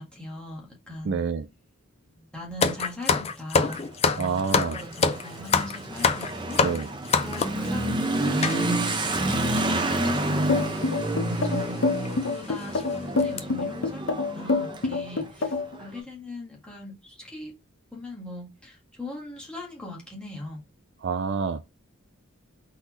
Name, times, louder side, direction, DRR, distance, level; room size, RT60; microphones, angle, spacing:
voice 1, 0.0-1.3 2.1-3.8 4.1-6.6 7.2-11.7 12.1-17.5 17.9-20.6, left 2 dB, 5° left, 1.6 m, -40 dB
voice 2, 1.1-1.5 4.2-4.8 6.6-6.9 21.0-21.6, right 5 dB, 55° right, 0.3 m, -27 dB
sound 1, 2.6-7.7 8.4-8.6 9.3-9.4 9.6-9.8 10.7-10.9 11.4-11.5 12.1-12.2 12.6-12.8 13.2-13.4, left 5 dB, 30° left, 0.4 m, -25 dB
Motorcycle / Accelerating revving vroom, 3.7-15.9, right 1 dB, 20° right, 0.7 m, -29 dB
sound 2, 10.5-15.8, left 3 dB, 60° left, 0.8 m, -25 dB
4.1 x 3.9 x 3.0 m
head